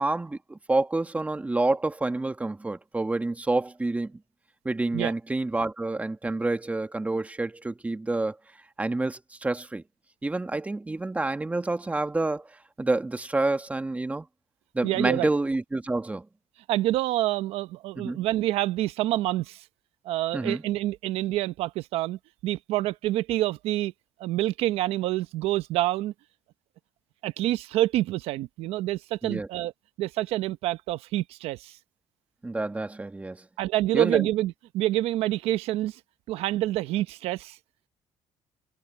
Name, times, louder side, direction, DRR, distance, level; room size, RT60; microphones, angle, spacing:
voice 1, 0.0-4.2 4.7-8.4 8.8-9.8 10.2-12.5 12.8-14.3 14.7-16.3 18.0-18.2 20.3-20.6 29.2-29.5 32.4-33.5 33.9-34.3, right 2 dB, 15° right, 1.6 m, -28 dB
voice 2, 14.8-15.3 16.7-19.6 20.0-23.9 24.2-26.1 27.2-29.7 30.0-31.8 33.6-36.0 36.3-37.6, right 15 dB, 80° right, 1.0 m, -27 dB
cardioid pair, 100°, 10 cm